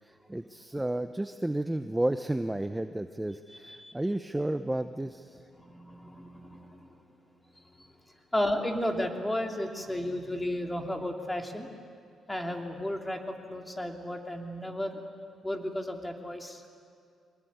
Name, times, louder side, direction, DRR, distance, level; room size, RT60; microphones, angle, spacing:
voice 1, 0.0-5.4, right 1 dB, 10° right, 9 dB, 0.8 m, -32 dB
voice 2, 5.6-7.0 7.5-7.9 8.3-11.7 12.3-15.0 15.4-16.6, left 1 dB, 10° left, 3 dB, 2.8 m, -33 dB
23.5 x 20.0 x 9.4 m, 2.3 s
cardioid pair, 90°, 0 cm